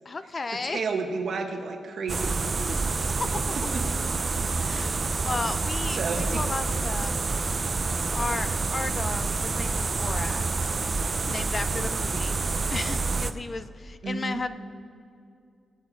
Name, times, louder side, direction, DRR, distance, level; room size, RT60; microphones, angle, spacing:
voice 1, 0.1-0.8 2.7-3.4 4.6-7.2 7.5-7.7 8.1-10.5 11.3-12.4 12.7-14.5, left 3 dB, 30° left, 12 dB, 0.4 m, -34 dB
voice 2, 0.6-2.4 3.7-3.8 4.7-5.0 6.0-6.4 14.0-14.4, right 4 dB, 55° right, 4 dB, 1.3 m, -31 dB
sound 1, 2.1-13.3, right 4 dB, 30° right, 0.5 m, -28 dB
20.0 x 8.3 x 5.0 m, 2.4 s
wide cardioid pair, 145°, 0 cm